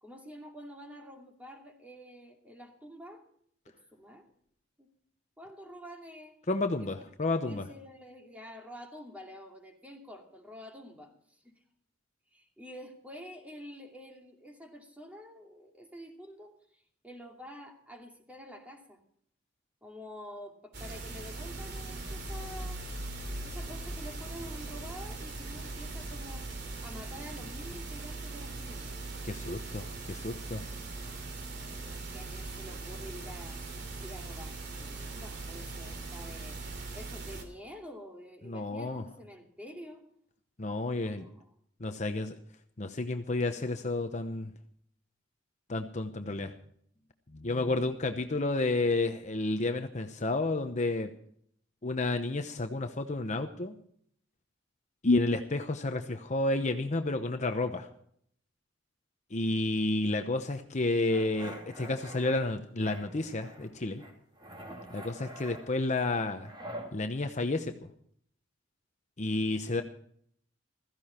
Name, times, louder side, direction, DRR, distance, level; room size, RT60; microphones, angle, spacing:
voice 1, 0.0-3.2 3.7-4.3 4.8-4.9 5.4-6.4 6.8-6.9 7.4-11.6 12.3-19.0 19.8-22.8 23.4-28.9 31.8-33.6 34.0-36.6 36.9-40.0 40.9-41.5, equal, 10° right, 2 dB, 2.6 m, -48 dB
voice 2, 6.5-7.6 29.2-30.6 38.4-39.0 40.6-41.3 41.8-42.3 42.8-44.5 45.7-46.5 47.3-51.1 51.8-53.8 55.0-57.9 59.3-64.0 64.9-66.5 66.9-67.7 69.2-69.8, left 2 dB, 35° left, 7 dB, 0.9 m, -31 dB
sound 1, 20.7-37.4, right 2 dB, 60° right, 3.2 m, -40 dB
sound 2, 61.1-62.4 62.8-63.7 64.0-66.9, right 1 dB, 25° right, 2.9 m, -45 dB
16.0 x 14.5 x 4.3 m, 0.64 s
head